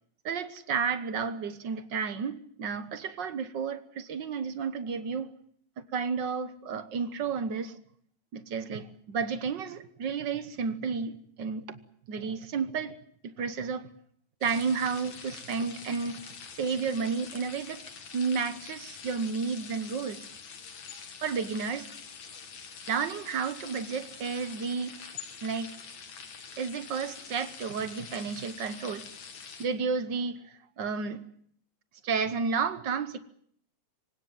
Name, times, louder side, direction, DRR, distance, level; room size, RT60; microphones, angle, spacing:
voice 1, 0.2-5.3 5.9-7.8 8.3-11.8 12.1-13.0 13.2-13.9 14.4-17.8 18.1-20.3 21.2-21.9 22.9-24.9 25.4-25.7 26.6-29.1 29.6-31.2 32.0-33.2, right 5 dB, 55° right, 1.3 m, -32 dB
sound 1, 14.4-29.7, left 6 dB, 65° left, 3.6 m, -45 dB
26.0 x 17.0 x 9.4 m
omnidirectional pair, 3.3 m